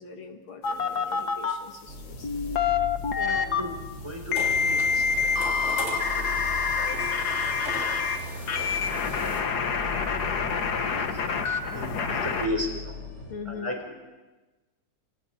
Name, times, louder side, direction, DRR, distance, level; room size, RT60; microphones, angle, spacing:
voice 1, 0.0-2.3 3.2-3.5 13.2-13.7, left 5 dB, 75° left, 4 dB, 2.6 m, -41 dB
sound 1, 0.6-1.5 2.2-3.6 4.3-8.2 8.5-12.5, left 5 dB, 55° left, 1.8 m, -27 dB
sound 2, 1.9-13.3, left 2 dB, 50° right, 6.2 m, -39 dB
voice 2, 3.2-7.6 7.9-8.1 8.4-9.5 10.9-11.2 11.7-13.0 13.5-14.0, left 1 dB, 15° right, 2 dB, 3.6 m, -37 dB
sound 3, 4.3-9.4, left 1 dB, 30° left, 4.0 m, -38 dB
28.0 x 26.5 x 4.4 m, 1.2 s
omnidirectional pair, 2.2 m